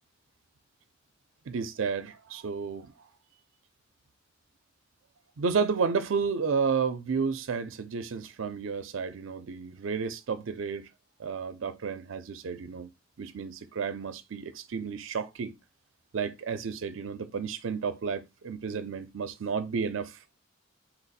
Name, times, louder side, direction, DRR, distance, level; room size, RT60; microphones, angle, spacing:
voice 1, 1.5-2.9 5.4-10.9 11.2-12.9 13.2-15.5 16.1-20.2, right 5 dB, 80° right, 0.5 m, -31 dB
4.3 x 2.5 x 4.0 m
head